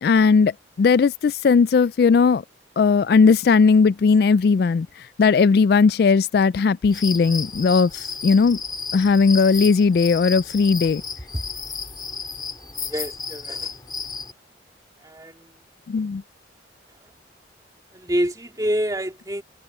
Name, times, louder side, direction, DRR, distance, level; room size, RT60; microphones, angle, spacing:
voice 1, 0.0-2.4 2.8-8.6 8.9-11.0 15.9-16.2, left 5 dB, 55° left, 0.3 m, -17 dB
sound 1, 6.9-14.3, left 5 dB, 25° left, 3.9 m, -33 dB
voice 2, 12.8-13.7 15.0-15.6 17.9-19.4, equal, 20° right, 2.4 m, -27 dB
head